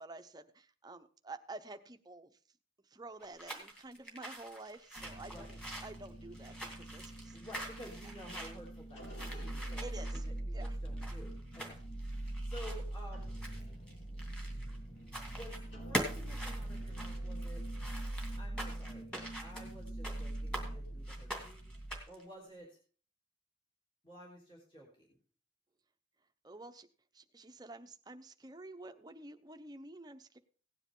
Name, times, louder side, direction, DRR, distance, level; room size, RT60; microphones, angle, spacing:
voice 1, 0.0-2.4 2.9-7.4 9.8-10.2 10.5-10.8 26.4-26.9 27.1-30.4, right 2 dB, 20° right, 7 dB, 0.8 m, -50 dB
sound 1, 3.2-14.8 15.1-15.6 15.9-20.7 21.1-22.2, right 1 dB, 5° left, 2.4 m, -44 dB
sound 2, 4.9-22.0, right 1 dB, 75° left, 3.7 m, -42 dB
voice 2, 7.0-13.4 14.8-15.0 15.3-17.6 18.4-19.1 19.4-22.8 24.0-25.2, equal, 25° left, -3 dB, 3.0 m, -53 dB
17.0 x 9.7 x 3.8 m, 0.41 s
head